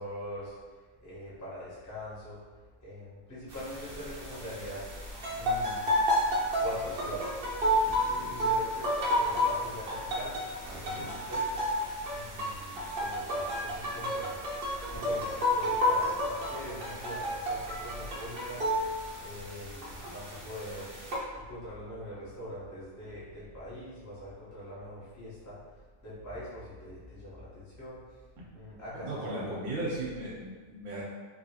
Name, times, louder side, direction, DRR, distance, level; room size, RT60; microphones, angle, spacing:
voice 1, 0.0-2.4 2.8-4.9 5.4-5.9 6.6-7.4 8.0-10.4 10.7-11.5 12.1-14.4 14.9-18.7 19.2-20.9 21.3-25.6 26.0-28.2 28.5-29.7, equal, 15° left, -11 dB, 0.7 m, -42 dB
sound 1, 3.5-21.2, equal, 50° right, 0.8 m, -31 dB
voice 2, 28.9-31.0, right 1 dB, 75° right, -6 dB, 1.1 m, -37 dB
2.8 x 2.7 x 2.8 m, 1.4 s
omnidirectional pair, 1.5 m